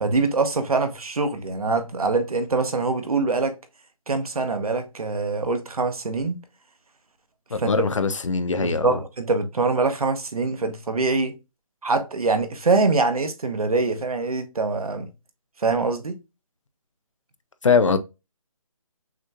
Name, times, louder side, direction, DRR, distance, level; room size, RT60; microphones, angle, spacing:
voice 1, 0.0-3.6 4.1-6.4 7.6-7.7 8.6-11.3 11.8-15.1 15.6-16.2, right 3 dB, 80° right, 1.1 m, -24 dB
voice 2, 7.5-9.0 17.6-18.0, left 5 dB, 60° left, 0.6 m, -21 dB
6.1 x 3.0 x 2.3 m
hypercardioid pair, 180°, 18 cm